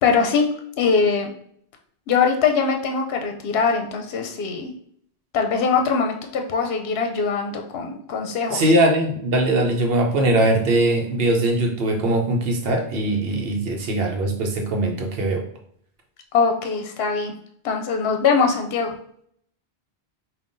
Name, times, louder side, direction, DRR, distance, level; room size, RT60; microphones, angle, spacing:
voice 1, 0.0-0.5 0.8-1.3 2.1-4.7 5.3-8.6 16.3-17.3 17.6-18.9, left 5 dB, 75° left, 4 dB, 0.8 m, -22 dB
voice 2, 8.5-15.4, right 1 dB, 65° right, 2 dB, 0.9 m, -21 dB
5.3 x 2.4 x 2.5 m, 0.65 s
omnidirectional pair, 1.1 m